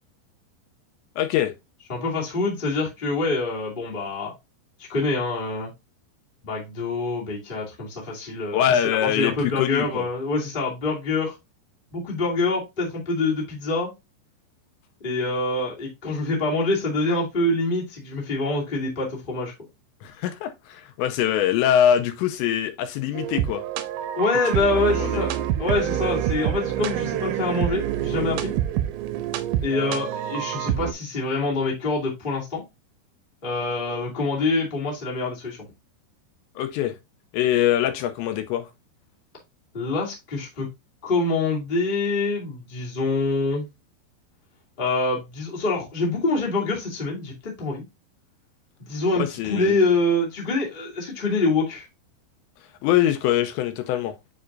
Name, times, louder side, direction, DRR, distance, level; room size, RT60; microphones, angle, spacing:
voice 1, 1.2-1.5 8.5-10.1 20.0-23.6 24.9-25.2 36.6-36.9 37.3-38.7 49.2-49.8 52.8-54.2, left 11 dB, 80° left, 2.8 m, -23 dB
voice 2, 1.9-4.3 4.9-5.7 6.4-11.3 11.9-13.9 15.0-19.5 24.1-25.3 25.6-28.5 29.6-32.6 33.4-35.6 39.7-40.7 41.0-43.6 44.8-47.8 48.9-51.8, left 2 dB, 20° left, 1.3 m, -25 dB
sound 1, 23.1-30.9, right 11 dB, 90° right, 3.0 m, -27 dB
8.8 x 4.2 x 2.6 m
omnidirectional pair, 5.3 m